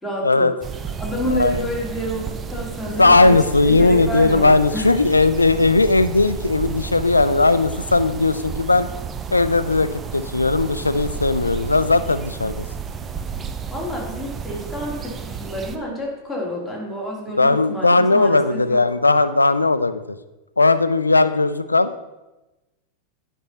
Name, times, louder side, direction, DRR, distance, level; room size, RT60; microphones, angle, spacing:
voice 1, 0.0-0.5 1.0-3.3 3.6-4.9 13.7-18.8, equal, ahead, -5 dB, 2.5 m, -29 dB
sound 1, 0.6-15.8, right 6 dB, 20° right, 0.5 m, -32 dB
voice 2, 3.0-8.9 9.3-12.7 17.4-20.0 20.6-21.9, left 3 dB, 80° left, 12 dB, 0.4 m, -17 dB
9.8 x 5.5 x 4.0 m, 1.0 s
figure-of-eight pair, 90°, 0 cm